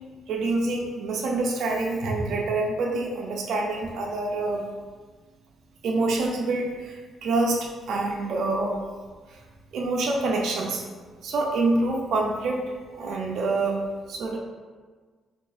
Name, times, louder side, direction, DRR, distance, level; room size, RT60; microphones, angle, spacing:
voice 1, 0.3-4.7 5.8-8.8 9.7-10.8 11.2-12.7 13.0-13.8 14.1-14.4, right 2 dB, 70° right, -1 dB, 0.4 m, -26 dB
5.1 x 2.4 x 2.4 m, 1.4 s
cardioid pair, 90°, 0 cm